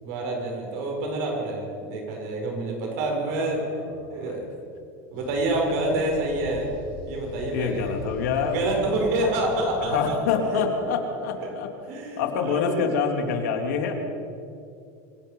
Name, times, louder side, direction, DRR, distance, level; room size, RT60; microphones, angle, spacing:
voice 1, 0.0-3.8 4.1-4.4 5.1-6.7 7.1-7.9 8.5-10.6 11.4-11.5 11.9-12.9, right 2 dB, 65° right, 0 dB, 6.8 m, -27 dB
voice 2, 3.3-3.7 4.0-4.4 7.5-8.7 9.9-11.7 12.2-13.9, left 6 dB, 80° left, 3 dB, 3.1 m, -26 dB
sound 1, 5.1-10.2, left 3 dB, 60° left, 5.5 m, -42 dB
26.0 x 17.5 x 5.6 m, 2.5 s
supercardioid pair, 140°, 9 cm